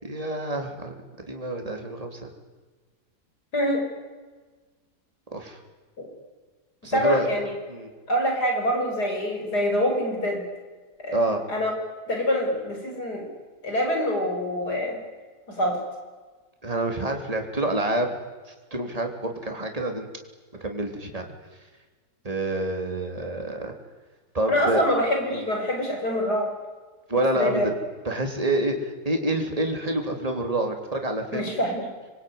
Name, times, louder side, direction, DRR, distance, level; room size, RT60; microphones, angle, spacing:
voice 1, 0.0-0.9 1.3-2.3 5.3-5.6 6.8-7.3 7.7-7.9 11.1-11.4 16.6-18.2 18.7-20.1 20.6-21.2 22.2-23.7 24.3-24.8 25.3-25.5 27.1-27.8 28.1-31.6, right 1 dB, 20° right, 4 dB, 3.6 m, -27 dB
voice 2, 3.5-3.9 6.0-6.1 6.8-7.5 8.1-10.5 11.0-11.2 11.5-11.7 12.1-13.3 13.6-15.0 15.5-15.8 24.5-26.5 27.3-27.7 31.3-31.9, equal, 80° left, 2 dB, 6.5 m, -25 dB
26.5 x 22.5 x 9.6 m, 1.3 s
omnidirectional pair, 1.7 m